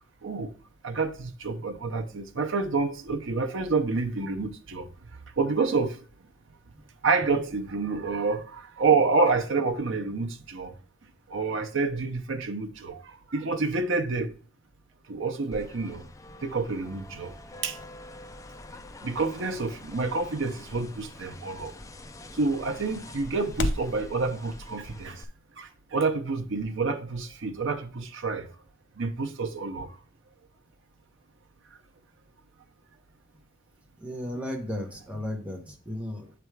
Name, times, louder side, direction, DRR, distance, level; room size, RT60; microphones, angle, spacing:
voice 1, 0.2-0.5 0.8-4.9 5.4-6.0 7.0-10.8 11.3-14.3 15.1-16.1 16.4-17.3 17.6-17.8 19.0-21.7 22.3-25.2 25.6-28.5 29.0-30.0, right 4 dB, 65° right, 0.7 m, -28 dB
sound 1, 15.5-25.2, left 2 dB, 15° left, 0.4 m, -46 dB
sound 2, 17.7-24.0, left 1 dB, 60° left, 0.6 m, -39 dB
voice 2, 34.0-36.3, left 1 dB, 5° right, 1.1 m, -34 dB
7.9 x 3.4 x 4.6 m
head